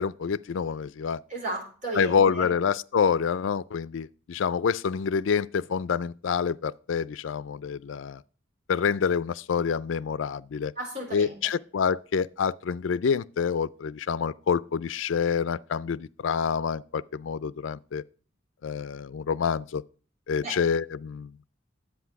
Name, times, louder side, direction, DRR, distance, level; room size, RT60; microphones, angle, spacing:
voice 1, 0.0-1.2 1.9-8.2 8.7-10.7 11.1-18.0 18.6-19.8 20.3-21.5, left 6 dB, 75° left, 0.4 m, -27 dB
voice 2, 1.3-2.5 10.8-11.5 20.4-20.6, right 2 dB, 40° right, 4.4 m, -34 dB
10.5 x 8.1 x 4.7 m
head